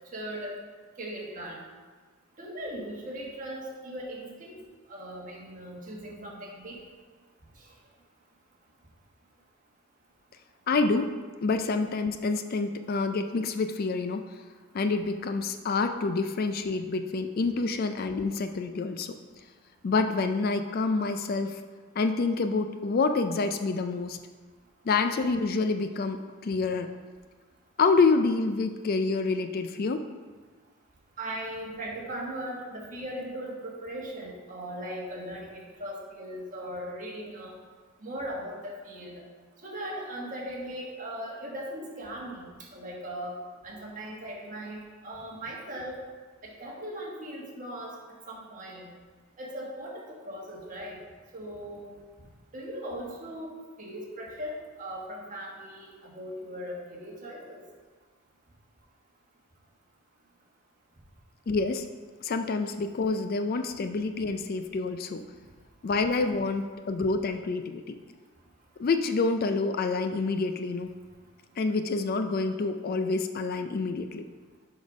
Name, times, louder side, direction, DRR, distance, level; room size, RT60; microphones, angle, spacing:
voice 1, 0.1-0.5 1.0-1.6 2.4-4.5 4.9-6.8 31.2-37.6 38.0-39.2 39.6-43.4 43.6-46.0 46.4-48.0 48.3-48.9 49.4-51.0 51.3-51.9 52.5-53.5 53.8-57.6, right 1 dB, 40° right, -2 dB, 1.4 m, -38 dB
voice 2, 10.7-11.1 11.4-14.2 14.7-19.1 19.8-21.6 22.0-24.2 24.9-26.2 26.4-26.9 27.8-30.0 61.5-61.8 62.2-65.2 65.8-67.9 68.8-70.9 71.6-74.2, left 3 dB, 45° left, 7 dB, 0.4 m, -27 dB
6.2 x 5.0 x 5.2 m, 1.4 s
head